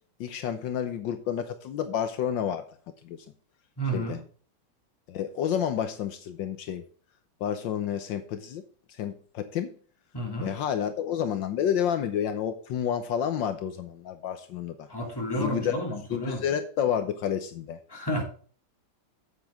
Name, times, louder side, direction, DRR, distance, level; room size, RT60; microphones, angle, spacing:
voice 1, 0.2-2.7 3.0-3.3 3.9-4.2 5.1-6.8 7.4-8.6 8.9-9.7 10.4-14.9 15.4-15.7 16.1-17.8, left 9 dB, 75° left, 9 dB, 1.5 m, -30 dB
voice 2, 3.8-4.2 10.1-10.5 14.9-16.4 17.9-18.2, right 1 dB, 10° left, 0 dB, 3.0 m, -31 dB
8.3 x 8.3 x 3.6 m, 0.43 s
omnidirectional pair, 2.1 m